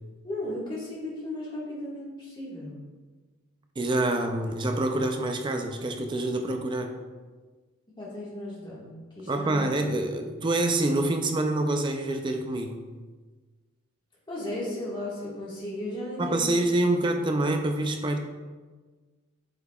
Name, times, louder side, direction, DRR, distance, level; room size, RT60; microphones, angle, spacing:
voice 1, 0.2-2.8 7.9-8.9 9.1-9.7 14.3-16.6, left 1 dB, 20° left, -6 dB, 1.5 m, -35 dB
voice 2, 3.8-6.9 9.3-12.8 16.2-18.2, right 2 dB, 20° right, 4 dB, 0.3 m, -26 dB
7.8 x 5.4 x 2.3 m, 1.4 s
head